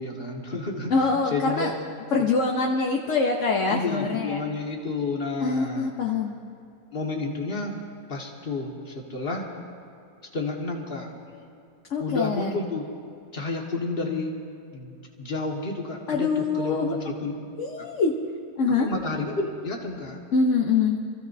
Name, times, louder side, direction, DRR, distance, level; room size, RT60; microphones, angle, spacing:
voice 1, 0.0-1.8 2.2-2.3 3.7-5.9 6.9-7.8 8.1-9.5 10.3-11.1 12.0-12.9 13.3-14.3 14.7-17.3 18.8-20.2, left 3 dB, 35° left, -1 dB, 1.9 m, -31 dB
voice 2, 0.9-1.7 2.1-4.4 5.4-6.3 11.9-12.5 16.1-17.0 17.6-18.2 18.6-18.9 20.3-21.0, left 4 dB, 50° left, 0 dB, 1.2 m, -24 dB
27.5 x 15.0 x 2.8 m, 2.5 s
omnidirectional pair, 1.8 m